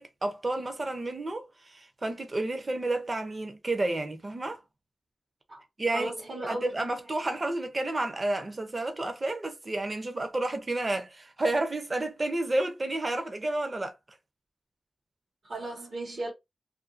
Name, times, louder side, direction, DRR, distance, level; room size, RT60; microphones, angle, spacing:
voice 1, 0.0-4.6 5.8-6.1 6.4-14.0, right 2 dB, 30° right, 0.6 m, -31 dB
voice 2, 5.9-6.7 15.4-16.3, right 2 dB, 60° right, 1.1 m, -35 dB
2.7 x 2.5 x 2.6 m
wide cardioid pair, 145°, 0 cm